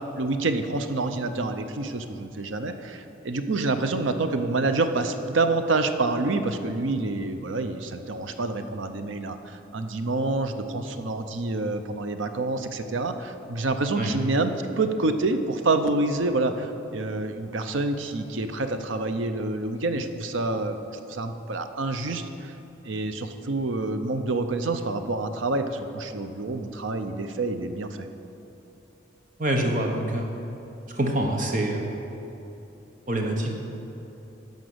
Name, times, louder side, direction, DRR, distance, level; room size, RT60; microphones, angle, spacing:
voice 1, 0.2-20.8 21.1-22.5 22.8-28.1, right 2 dB, 90° right, 8 dB, 0.7 m, -27 dB
voice 2, 29.4-30.2 31.0-31.8 33.1-33.5, right 1 dB, 40° right, 2 dB, 1.1 m, -25 dB
11.5 x 5.3 x 7.9 m, 2.9 s
head